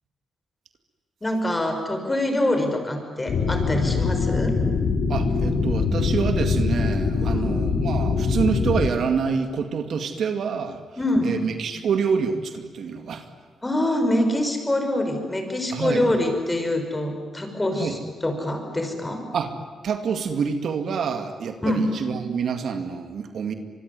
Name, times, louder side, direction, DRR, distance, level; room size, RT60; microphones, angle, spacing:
voice 1, 1.2-4.5 7.3-7.6 11.0-11.3 13.6-19.2 21.6-21.8, left 1 dB, 20° left, 5 dB, 6.0 m, -25 dB
sound 1, 3.3-8.9, left 4 dB, 65° left, 3.6 m, -23 dB
voice 2, 5.1-10.8 11.2-13.3 15.7-16.1 17.8-18.0 19.3-19.5 19.8-23.5, right 6 dB, 65° right, 7 dB, 2.2 m, -27 dB
25.0 x 23.0 x 9.8 m, 1.5 s
cardioid pair, 80°, 0 cm